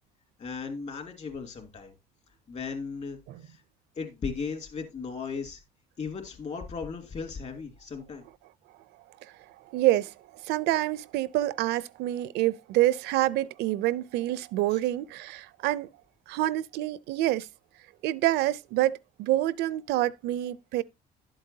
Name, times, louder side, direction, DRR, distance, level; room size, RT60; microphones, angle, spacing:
voice 1, 0.4-1.9 2.5-3.6 4.0-5.6 6.0-8.2 14.7-14.8, left 5 dB, 40° left, 2.9 m, -36 dB
voice 2, 9.2-15.9 16.3-17.5 18.0-20.8, right 15 dB, 85° right, 0.5 m, -27 dB
11.5 x 7.8 x 2.7 m
cardioid pair, 110°, 17 cm